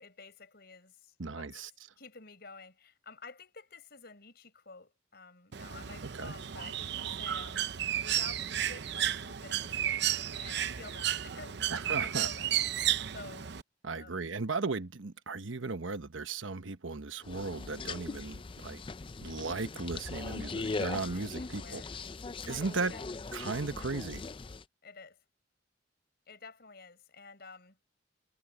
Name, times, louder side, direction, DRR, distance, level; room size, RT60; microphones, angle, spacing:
voice 1, 0.0-1.6 2.0-10.1 10.4-12.6 13.1-13.5 13.9-14.3 21.0-21.9 22.5-23.2 23.8-23.9 24.8-25.2 26.3-27.8, left 4 dB, 55° left, 6.2 m, -51 dB
voice 2, 1.2-1.7 6.2-6.3 11.7-12.3 13.8-18.8 19.2-21.8 22.5-22.9 23.3-24.2, right 3 dB, 90° right, 1.1 m, -36 dB
Bird, 5.5-13.6, right 11 dB, 60° right, 0.7 m, -33 dB
sound 1, 17.2-24.6, left 3 dB, 25° left, 0.4 m, -40 dB
head